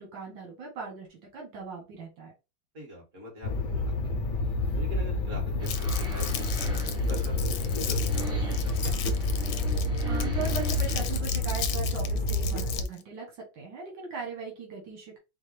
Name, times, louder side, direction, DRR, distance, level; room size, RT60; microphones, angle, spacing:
voice 1, 0.0-2.3 10.0-15.2, right 4 dB, 80° right, 0 dB, 2.0 m, -39 dB
voice 2, 2.7-4.1 4.7-6.7 7.1-8.8, equal, 40° right, -2 dB, 2.2 m, -43 dB
sound 1, 3.4-12.8, left 2 dB, 70° left, 0.7 m, -28 dB
Crumpling crinkling, 5.6-13.0, left 9 dB, 85° left, 1.4 m, -37 dB
sound 2, 5.6-11.2, right 1 dB, 5° right, 0.6 m, -42 dB
4.8 x 2.3 x 3.1 m, 0.25 s
omnidirectional pair, 2.0 m